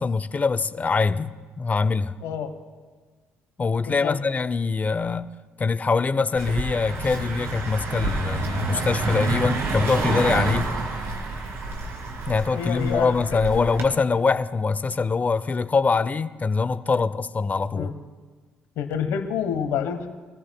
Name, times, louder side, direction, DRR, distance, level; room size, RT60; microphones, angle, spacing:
voice 1, 0.0-2.1 3.6-5.3 5.6-10.7 12.3-17.9, left 4 dB, 30° left, 0.7 m, -23 dB
Car passing by, 6.4-13.8, right 3 dB, 60° right, 2.6 m, -28 dB
voice 2, 12.5-13.7 17.7-17.9 18.8-20.1, left 8 dB, 75° left, 1.2 m, -28 dB
23.5 x 14.5 x 2.3 m
hypercardioid pair, 55°, 5 cm